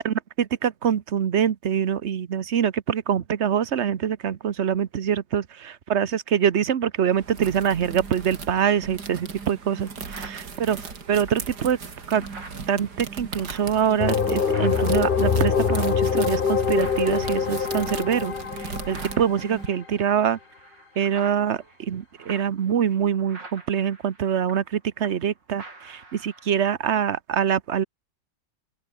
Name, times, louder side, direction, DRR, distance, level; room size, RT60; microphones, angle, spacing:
voice 1, 0.0-11.8 12.1-12.2 12.7-20.4 21.0-27.8, right 8 dB, 45° right, 1.0 m, -25 dB
sound 1, 7.0-19.7, right 5 dB, 65° right, 3.1 m, -37 dB
sound 2, 9.1-9.2 9.6-16.0 16.2-16.5 16.8-25.3 25.6-26.6, right 3 dB, 80° right, 6.1 m, -47 dB
sound 3, 14.0-19.7, left 6 dB, 35° left, 0.9 m, -24 dB
open air
omnidirectional pair, 1.9 m